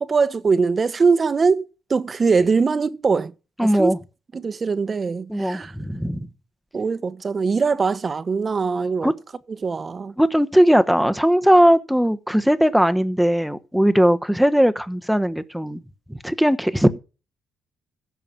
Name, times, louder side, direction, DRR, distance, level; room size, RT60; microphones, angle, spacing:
voice 1, 0.0-1.6 1.9-3.3 3.6-3.9 4.3-5.7 6.7-9.1 9.5-10.1, right 5 dB, 35° right, 1.1 m, -21 dB
voice 2, 3.6-4.0 5.3-6.3 9.0-9.1 10.2-15.8 16.1-17.0, equal, ahead, 1.2 m, -18 dB
16.0 x 5.9 x 7.1 m
cardioid pair, 90°, 0 cm